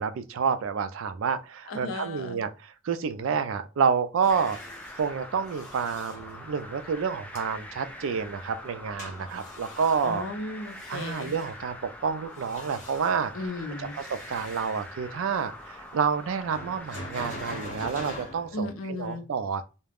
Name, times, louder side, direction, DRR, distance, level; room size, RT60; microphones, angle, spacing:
voice 1, 0.0-4.6 5.0-10.2 10.9-13.3 13.8-19.6, right 6 dB, 70° right, 0.4 m, -29 dB
voice 2, 1.7-2.4 10.0-11.3 13.3-14.0 18.5-19.3, left 2 dB, 75° left, 0.6 m, -35 dB
sound 1, 4.2-6.8 7.3-7.4 9.0-11.6 12.2-13.5 13.9-14.9 16.5-18.6, left 1 dB, 40° left, 0.7 m, -44 dB
sound 2, 4.3-17.7, left 1 dB, 10° left, 0.4 m, -44 dB
2.4 x 2.1 x 3.3 m
head